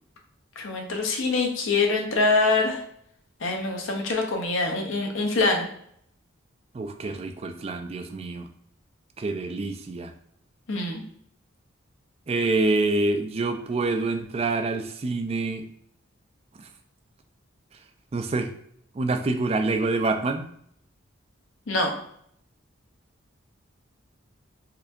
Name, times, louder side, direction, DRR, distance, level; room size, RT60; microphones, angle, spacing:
voice 1, 0.6-2.8 3.4-5.7 10.7-11.0 21.7-21.9, left 3 dB, 70° left, 1 dB, 0.8 m, -24 dB
voice 2, 6.7-8.5 9.2-10.1 12.3-15.7 18.1-18.5 19.0-20.5, right 3 dB, 30° right, 6 dB, 0.3 m, -26 dB
4.1 x 2.7 x 2.6 m, 0.68 s
head